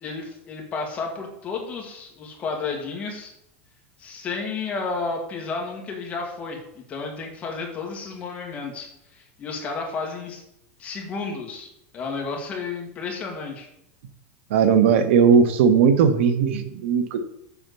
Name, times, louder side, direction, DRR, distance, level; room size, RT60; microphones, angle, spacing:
voice 1, 0.0-3.3 4.0-10.4 10.8-13.7, left 4 dB, 20° left, 0 dB, 1.9 m, -32 dB
voice 2, 14.5-17.3, right 6 dB, 70° right, 9 dB, 1.1 m, -18 dB
7.3 x 5.8 x 6.8 m, 0.79 s
supercardioid pair, 175°, 7 cm